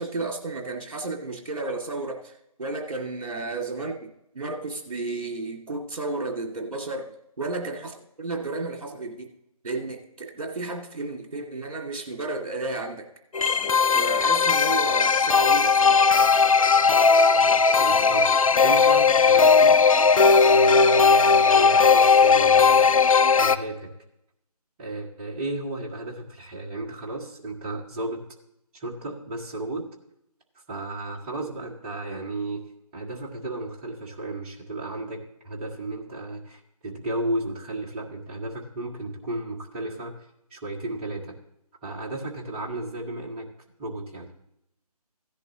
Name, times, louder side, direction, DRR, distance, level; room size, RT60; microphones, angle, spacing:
voice 1, 0.0-2.3 2.6-4.0 4.3-9.3 9.6-13.1 13.9-16.3, right 3 dB, 60° right, 2 dB, 2.5 m, -32 dB
sound 1, 13.3-23.6, left 5 dB, 55° left, 0.6 m, -17 dB
voice 2, 17.8-18.3 18.6-19.8 20.4-22.9 23.4-23.9 24.8-28.2 28.7-29.9 30.7-32.6 32.9-40.2 40.5-41.3 41.8-43.5 43.8-44.3, right 2 dB, 15° right, -2 dB, 1.4 m, -34 dB
16.0 x 10.5 x 3.0 m, 0.79 s
figure-of-eight pair, 160°, 20 cm